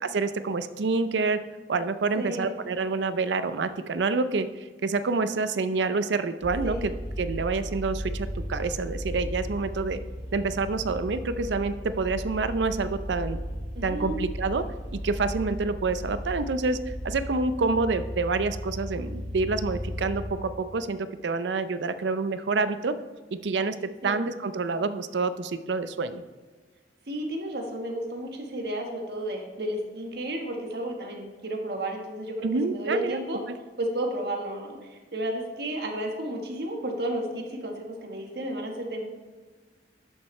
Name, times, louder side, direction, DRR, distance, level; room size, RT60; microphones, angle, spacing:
voice 1, 0.0-1.4 1.7-4.5 4.8-6.9 7.2-10.0 10.3-13.4 13.8-14.6 14.9-22.9 23.3-23.8 24.0-26.2 32.4-33.2, right 4 dB, 80° right, 12 dB, 0.5 m, -27 dB
voice 2, 2.2-2.5 6.6-6.8 13.7-14.2 24.0-24.2 27.1-33.4 33.8-39.1, right 1 dB, 60° right, 2 dB, 1.4 m, -32 dB
sound 1, 6.4-20.3, equal, 40° left, 1.8 m, -35 dB
11.0 x 7.3 x 3.2 m, 1.3 s
head